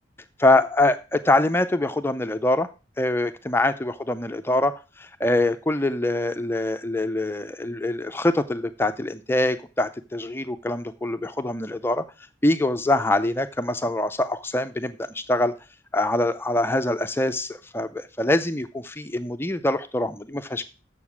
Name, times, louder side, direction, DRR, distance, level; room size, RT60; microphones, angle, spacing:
voice 1, 0.4-2.7 3.0-12.0 12.4-15.5 15.9-20.7, left 2 dB, 10° left, 0.5 m, -24 dB
7.2 x 6.7 x 7.1 m
head